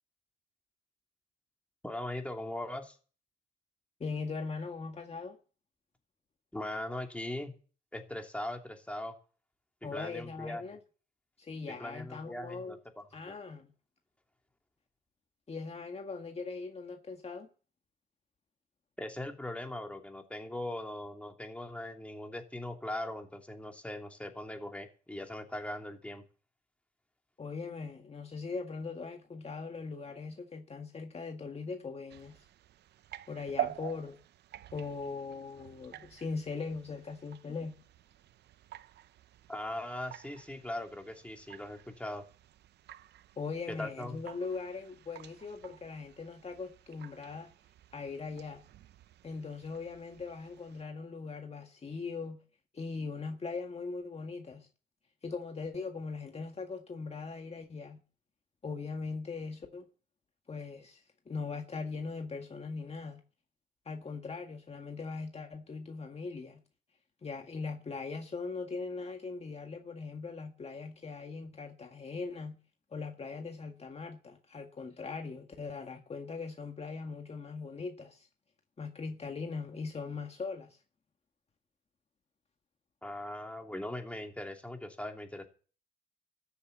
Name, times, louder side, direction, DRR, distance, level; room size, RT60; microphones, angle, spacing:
voice 1, 1.8-3.0 6.5-7.5 7.9-9.2 9.8-10.6 11.7-13.4 19.0-26.2 39.5-42.2 43.7-44.2 83.0-85.5, left 1 dB, 5° left, 2.8 m, -40 dB
voice 2, 4.0-5.4 9.8-10.8 11.4-12.8 13.1-13.7 15.5-17.5 27.4-32.4 33.3-34.2 34.7-37.8 43.4-47.5 47.9-48.6 49.2-52.4 52.7-54.7 55.2-58.0 58.6-59.9 60.5-63.2 63.9-66.6 67.2-72.6 72.9-78.3 78.8-80.8, left 4 dB, 35° left, 1.8 m, -40 dB
sound 1, 32.1-50.8, right 14 dB, 70° right, 0.6 m, -47 dB
14.0 x 7.0 x 8.2 m
supercardioid pair, 75°, 18 cm